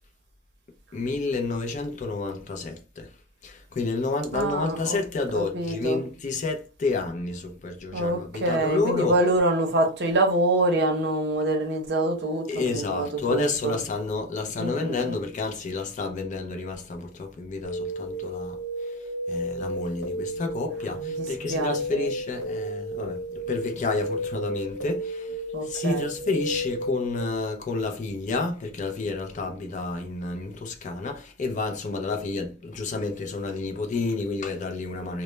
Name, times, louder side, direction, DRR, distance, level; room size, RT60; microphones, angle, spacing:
voice 1, 0.9-3.1 3.4-9.2 12.5-18.9 19.3-35.2, left 3 dB, 40° left, 0.4 m, -30 dB
voice 2, 4.3-5.0 5.3-6.0 7.9-13.7 14.6-15.2 20.9-22.1 25.5-26.1, right 2 dB, 60° right, 0.6 m, -26 dB
sound 1, 17.6-27.2, right 1 dB, 85° left, 1.0 m, -32 dB
2.2 x 2.0 x 3.0 m
head